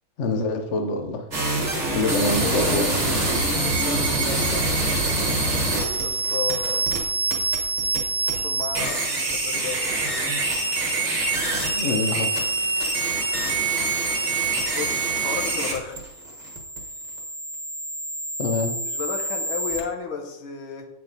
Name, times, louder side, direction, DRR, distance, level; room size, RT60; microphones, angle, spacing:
voice 1, 0.2-1.2 1.9-2.9 11.7-12.4 18.4-18.7, left 2 dB, 60° left, 5 dB, 0.7 m, -25 dB
sound 1, 1.3-19.8, right 2 dB, 25° right, 1.2 m, -25 dB
voice 2, 1.9-2.8 3.6-4.7 6.0-7.0 8.2-10.0 14.7-16.0 18.9-20.9, left 6 dB, 80° left, 4 dB, 1.7 m, -33 dB
7.9 x 4.5 x 3.9 m, 0.87 s
omnidirectional pair, 2.2 m